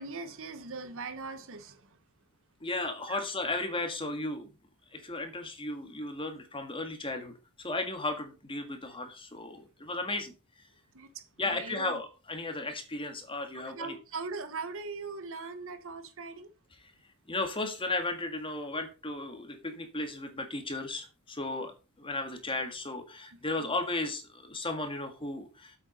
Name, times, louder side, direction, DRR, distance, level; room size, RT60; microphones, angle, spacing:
voice 1, 0.0-2.0 3.1-3.2 6.0-6.1 10.9-12.0 13.4-16.5 23.3-23.7, right 4 dB, 65° right, 1.2 m, -41 dB
voice 2, 2.6-4.5 4.9-10.3 11.4-13.9 17.3-21.7 22.0-25.7, left 2 dB, 25° left, 1.8 m, -35 dB
8.1 x 7.2 x 5.1 m
head